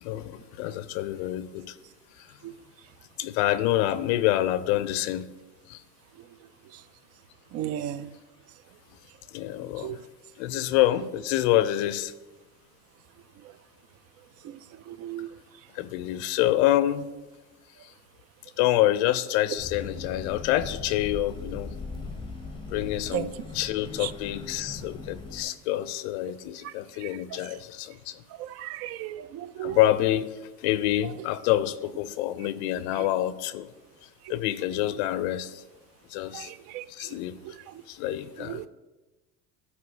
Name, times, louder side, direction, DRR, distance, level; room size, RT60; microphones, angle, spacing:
voice 1, 0.0-1.8 2.2-2.3 3.2-5.3 5.7-5.8 9.3-10.0 10.4-12.1 15.7-17.1 17.8-17.9 18.6-21.7 22.7-28.2 29.6-33.7 34.3-35.6 36.1-36.5 36.9-37.4 37.9-38.7, left 14 dB, 75° left, 13 dB, 0.5 m, -27 dB
voice 2, 7.5-8.1 9.8-10.0 14.4-14.6 14.9-15.3 23.1-23.3 24.0-24.1 26.6-26.7 27.0-27.1 28.4-29.8 33.0-33.1 36.3-37.1 37.5-37.7 38.4-38.6, right 12 dB, 45° right, 17 dB, 0.4 m, -35 dB
sound 1, 19.6-25.4, left 3 dB, 15° left, 0.8 m, -39 dB
9.2 x 3.1 x 5.3 m, 1.1 s
supercardioid pair, 100°, 34 cm